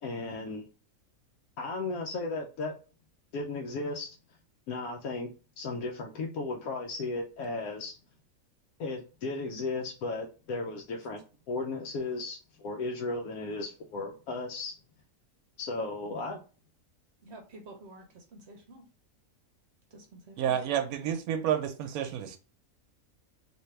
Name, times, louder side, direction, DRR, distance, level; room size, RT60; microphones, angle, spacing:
voice 1, 0.0-0.7 1.6-2.8 3.3-4.2 4.7-7.9 8.8-11.2 11.5-14.7 15.6-16.4, left 3 dB, 80° left, 1.1 m, -35 dB
voice 2, 17.2-18.8 19.9-20.5, right 2 dB, 55° right, 0.9 m, -50 dB
voice 3, 20.4-22.4, right 9 dB, 85° right, 1.0 m, -30 dB
3.5 x 2.8 x 3.1 m
omnidirectional pair, 1.5 m